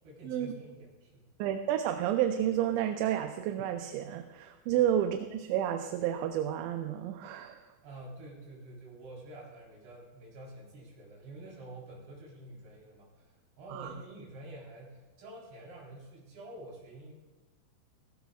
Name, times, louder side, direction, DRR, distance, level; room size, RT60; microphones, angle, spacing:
voice 1, 0.0-1.3 4.8-4.9 7.8-17.1, right 2 dB, 60° right, -4 dB, 5.7 m, -48 dB
voice 2, 1.4-7.6 13.7-13.9, right 10 dB, 85° right, 7 dB, 2.9 m, -30 dB
16.5 x 16.0 x 2.4 m, 1.2 s
omnidirectional pair, 5.2 m